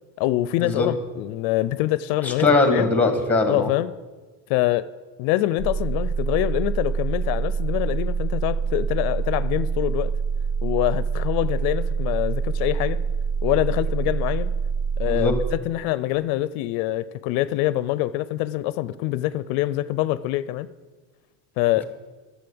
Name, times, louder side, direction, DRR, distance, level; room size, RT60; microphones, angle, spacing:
voice 1, 0.2-2.9 3.5-3.9 4.5-4.9 5.2-10.1 10.6-13.0 13.4-14.5 15.0-15.3 15.7-20.7 21.6-21.8, left 15 dB, 80° left, 15 dB, 0.6 m, -25 dB
voice 2, 2.2-3.7 15.1-15.3, left 3 dB, 5° left, 6 dB, 1.9 m, -20 dB
sound 1, 5.6-15.6, right 5 dB, 25° right, 0.5 m, -25 dB
10.5 x 7.5 x 8.6 m, 1.3 s
cardioid pair, 135°, 46 cm